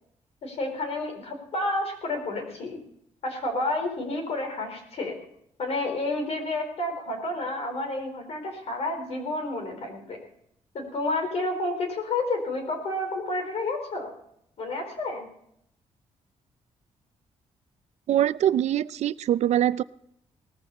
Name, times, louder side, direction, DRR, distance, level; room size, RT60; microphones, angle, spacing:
voice 1, 0.4-2.8 3.2-5.1 5.6-10.2 10.7-14.1 14.6-15.3, left 2 dB, 60° left, 4 dB, 4.5 m, -30 dB
voice 2, 18.1-19.8, right 11 dB, 70° right, 17 dB, 0.5 m, -23 dB
18.5 x 14.5 x 4.2 m, 0.73 s
cardioid pair, 135°, 12 cm